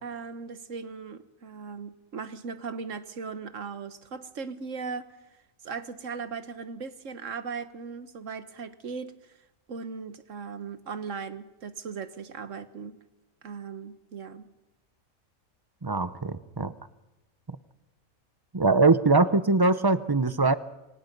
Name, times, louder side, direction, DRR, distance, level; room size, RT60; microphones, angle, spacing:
voice 1, 0.0-5.1 5.6-9.1 9.7-13.0 13.4-14.5, right 5 dB, 65° right, 11 dB, 1.5 m, -38 dB
voice 2, 15.8-16.7 18.5-20.5, right 3 dB, 20° right, 13 dB, 0.6 m, -22 dB
26.5 x 24.5 x 5.4 m, 1.0 s
omnidirectional pair, 1.4 m